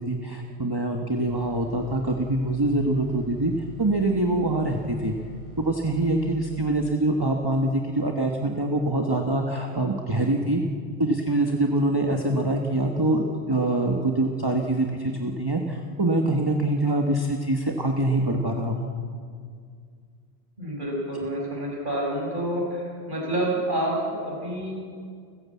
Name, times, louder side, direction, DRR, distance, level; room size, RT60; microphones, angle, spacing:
voice 1, 0.0-3.5 3.8-5.1 5.6-10.6 11.0-18.9, right 2 dB, 20° right, 2 dB, 1.3 m, -24 dB
sound 1, 1.3-7.0, right 2 dB, 10° left, 4.3 m, -47 dB
voice 2, 20.6-24.8, right 1 dB, 45° right, -2 dB, 6.0 m, -28 dB
29.5 x 14.5 x 8.4 m, 2.1 s
omnidirectional pair, 1.1 m